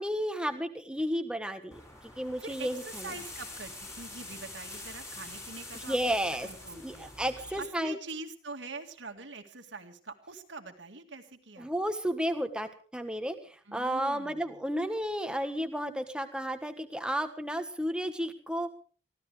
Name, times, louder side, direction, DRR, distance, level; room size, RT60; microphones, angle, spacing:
voice 1, 0.0-1.8 2.2-3.1 5.7-6.5 6.8-8.0 11.6-18.7, equal, 5° right, 7 dB, 1.4 m, -32 dB
sound 1, 1.7-7.6, left 2 dB, 15° left, 5.3 m, -45 dB
voice 2, 2.4-7.1 7.6-11.7 13.7-14.7, right 3 dB, 75° right, 5 dB, 2.1 m, -44 dB
24.0 x 16.0 x 3.4 m, 0.41 s
head